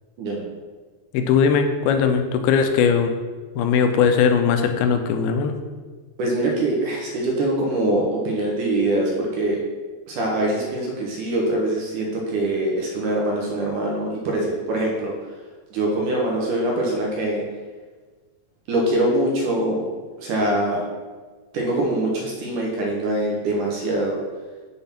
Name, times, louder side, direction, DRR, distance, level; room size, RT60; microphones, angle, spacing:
voice 1, 1.1-3.1 3.6-5.6, left 6 dB, 90° left, 6 dB, 2.5 m, -19 dB
voice 2, 6.2-9.6 10.1-15.1 15.7-17.4 18.7-19.8 20.2-20.8 21.5-24.2, right 1 dB, 70° right, -2 dB, 2.1 m, -23 dB
6.9 x 3.8 x 5.7 m, 1.4 s
omnidirectional pair, 4.4 m